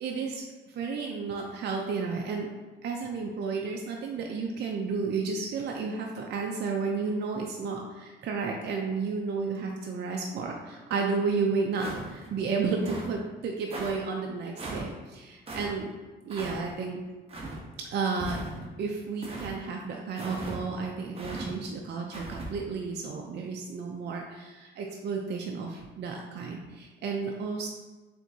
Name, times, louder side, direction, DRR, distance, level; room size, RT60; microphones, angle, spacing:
voice 1, 0.0-2.5 2.8-15.9 16.2-17.0 17.8-18.4 18.8-27.7, right 4 dB, 60° right, 0 dB, 0.5 m, -32 dB
sound 1, 11.8-12.3 12.8-13.2 13.7-13.9 14.6-14.9 15.5-15.7 16.3-16.6 17.3-17.6 18.2-18.7 19.2-19.5 20.2-20.6 21.2-21.5 22.1-22.5, right 2 dB, 30° right, 1.0 m, -38 dB
4.5 x 3.4 x 2.7 m, 1.2 s
cardioid pair, 90°, 20 cm